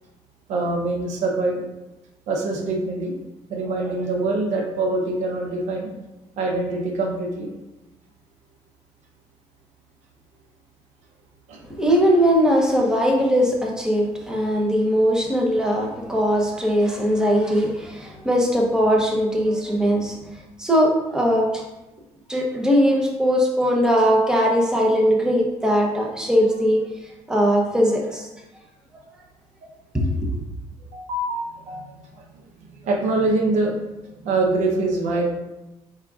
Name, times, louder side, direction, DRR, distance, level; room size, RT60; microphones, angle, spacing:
voice 1, 0.5-1.7 2.3-3.2 3.5-5.9 6.4-7.5 11.5-11.6 30.9-32.2 32.8-33.9 34.2-35.2, right 2 dB, 85° right, 1 dB, 0.7 m, -24 dB
voice 2, 11.8-20.2 20.6-21.6 22.3-26.8 27.3-28.3 29.9-30.3, equal, 5° right, -1 dB, 0.7 m, -20 dB
4.7 x 3.7 x 2.3 m, 0.99 s
cardioid pair, 125°, 12 cm